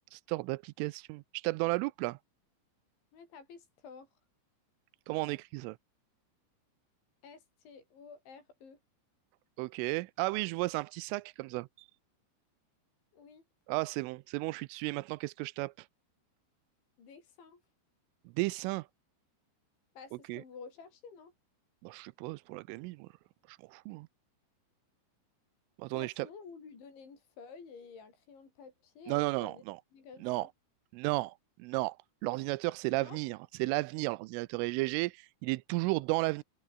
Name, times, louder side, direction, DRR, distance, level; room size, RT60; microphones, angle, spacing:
voice 1, 0.1-2.2 5.1-5.8 9.6-11.9 13.7-15.9 18.4-18.9 20.3-20.4 21.8-23.1 23.5-24.1 25.8-26.3 29.1-29.8 30.2-30.5 30.9-32.0 32.2-36.4, right 23 dB, 85° right, 3.2 m, -34 dB
voice 2, 3.1-4.1 7.2-8.8 13.1-13.4 17.0-17.6 20.0-21.3 25.9-29.6 29.9-30.5 33.0-33.2, left 5 dB, 65° left, 8.7 m, -51 dB
omnidirectional pair, 5.7 m